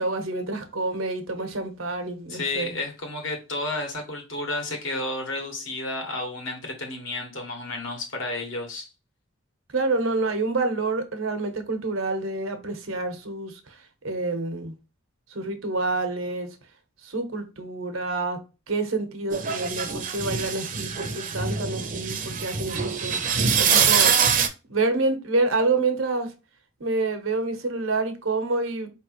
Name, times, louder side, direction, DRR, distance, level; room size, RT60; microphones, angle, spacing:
voice 1, 0.0-2.8 9.7-13.8 14.0-14.8 15.3-16.6 17.0-23.2 23.6-24.2 24.7-26.3 26.8-28.9, right 3 dB, 90° right, 1.0 m, -28 dB
voice 2, 2.3-8.9, left 2 dB, 70° left, 1.5 m, -31 dB
sound 1, 19.3-24.5, right 6 dB, 40° right, 0.6 m, -24 dB
4.8 x 3.2 x 3.0 m
head